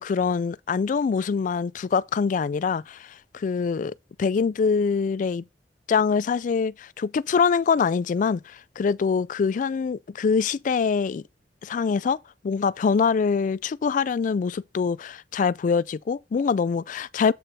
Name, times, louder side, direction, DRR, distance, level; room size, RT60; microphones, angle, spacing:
voice 1, 0.0-3.1 3.3-3.9 4.2-5.4 5.9-11.2 11.6-12.2 12.4-17.3, left 5 dB, 45° left, 0.3 m, -24 dB
7.8 x 4.1 x 4.5 m
head